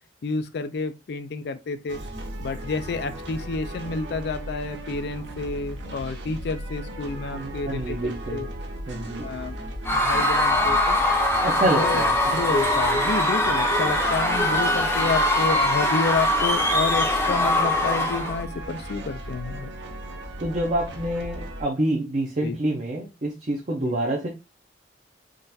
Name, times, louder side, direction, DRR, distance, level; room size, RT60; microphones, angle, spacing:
voice 1, 0.2-2.0 2.4-8.5 9.2-9.6 9.9-11.0 11.6-19.7 22.4-22.6 23.8-24.0, left 4 dB, 60° left, 0.4 m, -30 dB
sound 1, 1.9-21.6, right 1 dB, 80° right, 0.7 m, -36 dB
voice 2, 7.3-8.5 8.9-9.3 11.0-11.2 11.4-12.2 20.4-24.3, right 1 dB, 40° right, 0.6 m, -27 dB
Screaming / Cheering / Crowd, 9.8-18.4, left 1 dB, 15° left, 0.6 m, -22 dB
3.7 x 2.5 x 2.6 m
head